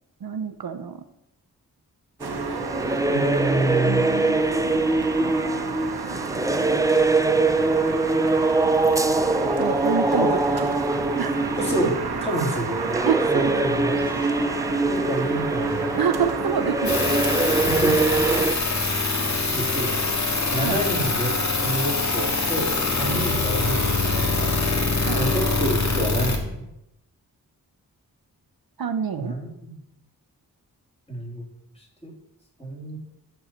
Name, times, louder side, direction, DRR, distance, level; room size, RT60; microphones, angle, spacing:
voice 1, 0.2-1.0 3.8-4.4 9.6-10.3 10.5-10.7 11.2-11.3 13.1-13.6 16.0-17.0 20.6-20.8 23.2-23.3 25.1-25.2 28.8-29.4, right 7 dB, 70° right, 9 dB, 0.8 m, -27 dB
sound 1, 2.2-18.5, right 2 dB, 10° right, 0.5 m, -23 dB
sound 2, 2.2-18.5, right 4 dB, 85° right, 1.2 m, -31 dB
voice 2, 3.1-4.0 10.1-10.3 10.5-10.6 11.6-12.8 13.3-14.0 14.9-15.9 17.6-18.5 19.5-20.0 20.5-21.3 21.6-24.5 25.2-26.7 29.2-29.8 31.1-31.5 31.8-32.1 32.6-33.0, right 1 dB, 15° left, -3 dB, 3.6 m, -28 dB
sound 3, 16.8-26.4, left 3 dB, 45° left, 1.8 m, -24 dB
12.0 x 4.6 x 7.3 m, 0.86 s
wide cardioid pair, 80°, 37 cm